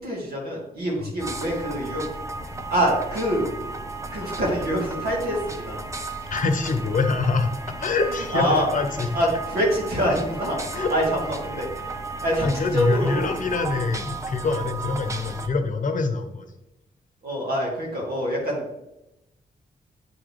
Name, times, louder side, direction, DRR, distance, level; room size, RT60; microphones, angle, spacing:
voice 1, 0.0-2.0 2.7-3.5 4.1-5.8 8.1-8.6 9.1-11.7 12.2-13.3 17.2-18.8, equal, 85° right, -3 dB, 2.4 m, -25 dB
sound 1, 1.2-15.5, right 3 dB, 20° right, 0.6 m, -34 dB
voice 2, 6.3-7.5 7.8-9.1 10.7-10.9 12.4-16.5, left 4 dB, 60° left, 7 dB, 0.8 m, -25 dB
9.3 x 3.9 x 3.2 m, 0.93 s
cardioid pair, 95°, 16 cm